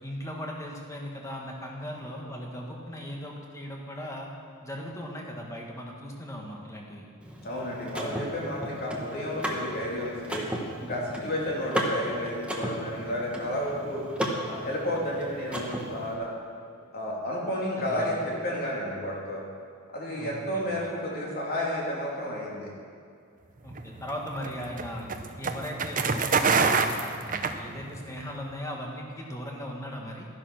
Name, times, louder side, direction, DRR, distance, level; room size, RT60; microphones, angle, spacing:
voice 1, 0.0-4.3 4.6-7.1 7.9-8.2 17.8-18.2 20.2-20.9 23.6-25.1 25.4-30.3, equal, 15° left, -1 dB, 1.7 m, -38 dB
Car / Mechanisms, 7.2-16.1, equal, 5° right, 1.3 m, -35 dB
voice 2, 7.4-10.5 10.8-14.1 14.5-16.3 16.9-19.4 19.9-22.7, left 1 dB, 45° left, -4 dB, 3.1 m, -31 dB
sound 1, 23.7-28.1, right 5 dB, 35° right, 0.7 m, -26 dB
13.0 x 10.5 x 6.1 m, 2.4 s
head